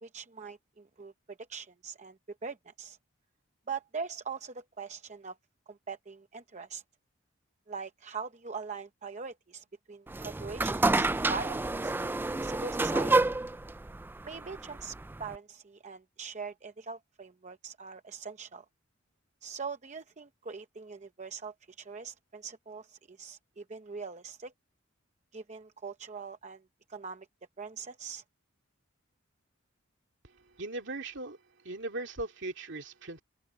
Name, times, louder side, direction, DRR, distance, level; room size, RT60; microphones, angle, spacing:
voice 1, 0.0-3.0 3.7-5.4 5.7-6.8 7.7-12.2 12.4-13.1 14.2-18.6 19.4-24.5 25.3-26.6 26.9-27.3 27.6-28.2, right 5 dB, 35° right, 0.8 m, -42 dB
sound 1, 10.1-15.4, right 2 dB, 10° right, 0.3 m, -29 dB
voice 2, 30.2-31.4 31.6-33.2, right 2 dB, 60° right, 2.6 m, -39 dB
open air
head